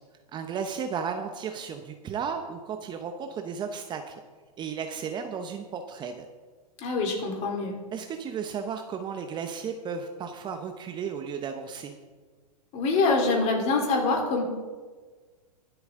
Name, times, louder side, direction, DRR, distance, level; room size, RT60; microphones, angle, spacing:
voice 1, 0.3-4.2 4.6-6.2 7.9-11.9, right 6 dB, 20° right, 6 dB, 0.8 m, -34 dB
voice 2, 6.8-7.8 12.7-14.4, left 3 dB, 35° left, 1 dB, 3.4 m, -25 dB
23.0 x 8.1 x 3.7 m, 1.4 s
hypercardioid pair, 130°, 20 cm